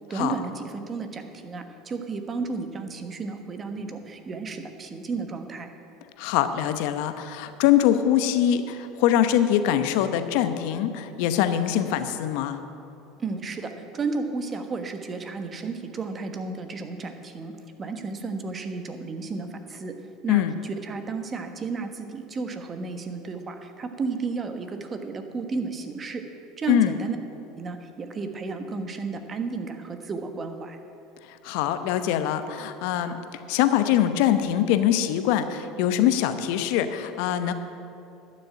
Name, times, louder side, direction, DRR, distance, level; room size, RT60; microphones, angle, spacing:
voice 1, 0.1-5.7 13.2-19.9 20.2-26.2 26.6-27.2 27.6-30.8, right 4 dB, 30° right, 7 dB, 1.3 m, -33 dB
voice 2, 6.2-12.6 20.3-20.5 26.7-26.9 31.4-33.2 33.5-37.5, left 11 dB, 70° left, 10 dB, 0.8 m, -23 dB
12.0 x 6.7 x 8.7 m, 2.7 s
hypercardioid pair, 90°, 0 cm